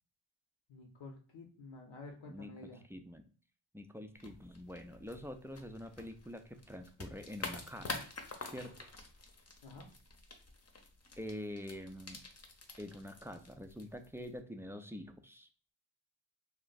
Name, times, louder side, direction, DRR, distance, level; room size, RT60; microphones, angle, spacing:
voice 1, 0.7-2.8 9.6-9.9, left 3 dB, 65° left, 1 dB, 0.9 m, -50 dB
voice 2, 2.3-2.6 2.9-3.2 3.7-8.1 8.5-8.9 11.2-12.2 12.8-15.5, left 1 dB, 5° right, 6 dB, 0.5 m, -46 dB
sound 1, 4.2-14.4, left 3 dB, 30° left, 0.8 m, -48 dB
2.4 x 2.2 x 3.9 m, 0.41 s
supercardioid pair, 45°, 49 cm